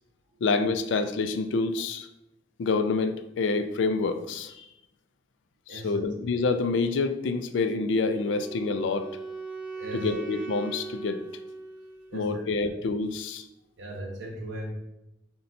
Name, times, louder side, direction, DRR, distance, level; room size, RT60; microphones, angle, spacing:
voice 1, 0.4-2.1 2.6-4.6 5.7-9.1 9.9-11.2 12.1-13.4, left 4 dB, 75° left, 9 dB, 0.3 m, -27 dB
voice 2, 5.7-6.1 9.7-10.1 12.1-12.4 13.8-14.7, right 1 dB, 80° right, -2 dB, 0.6 m, -37 dB
Wind instrument woodwind instrument, 8.2-12.3, right 4 dB, 5° right, 0.4 m, -39 dB
3.9 x 2.2 x 4.1 m, 0.87 s
head